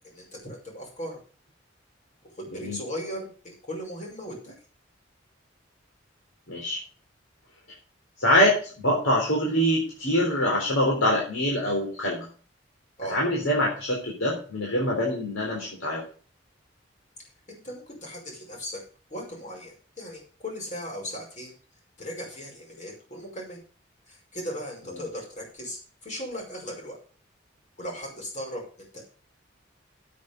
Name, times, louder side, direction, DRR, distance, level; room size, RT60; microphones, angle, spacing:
voice 1, 0.1-1.2 2.4-4.5 13.0-13.2 17.5-18.8 19.1-21.5 22.0-23.6 24.1-27.0 27.8-29.0, equal, 40° left, -1 dB, 5.4 m, -37 dB
voice 2, 6.5-6.8 8.2-12.3 13.1-16.0, equal, 90° left, -3 dB, 3.9 m, -24 dB
8.6 x 8.5 x 6.8 m, 0.41 s
head